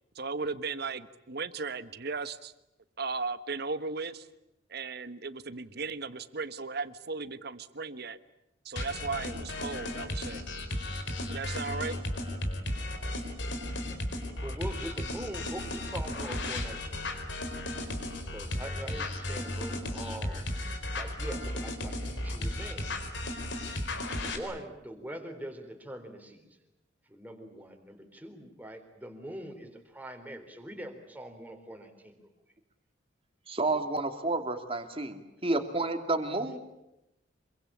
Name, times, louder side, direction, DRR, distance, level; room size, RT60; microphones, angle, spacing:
voice 1, 0.1-2.5 3.0-4.3 4.7-8.2 8.6-10.4 11.2-12.0, right 4 dB, 55° right, 13 dB, 1.3 m, -36 dB
sound 1, 8.8-24.4, left 1 dB, 65° left, 4.4 m, -35 dB
voice 2, 14.4-17.1 17.3-17.4 18.3-20.5 20.9-22.9 23.2-23.6 24.1-26.4 27.1-32.3, right 1 dB, 10° right, 5 dB, 3.9 m, -43 dB
voice 3, 33.5-36.6, right 2 dB, 30° right, 6 dB, 2.7 m, -30 dB
27.0 x 24.0 x 8.7 m, 0.88 s
head